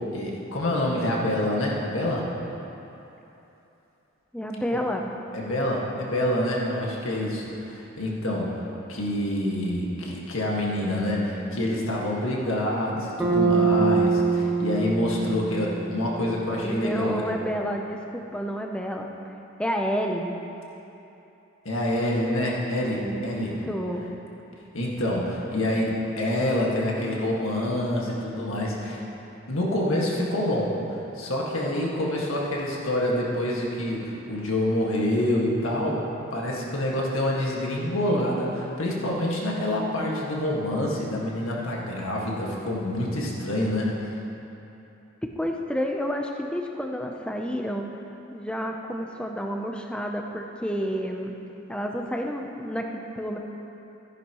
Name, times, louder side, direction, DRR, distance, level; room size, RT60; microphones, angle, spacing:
voice 1, 0.0-2.3 5.3-8.6 8.9-17.2 21.7-23.6 24.7-29.0 29.5-30.8 31.2-44.1, left 1 dB, 75° left, -3 dB, 1.8 m, -27 dB
voice 2, 4.3-5.1 16.6-19.1 19.6-20.4 23.0-24.0 45.4-47.9 48.3-51.4 51.7-53.4, equal, 5° left, 2 dB, 0.6 m, -30 dB
Bass guitar, 13.2-17.3, right 4 dB, 10° right, 1.2 m, -25 dB
14.5 x 10.0 x 3.0 m, 3.0 s
head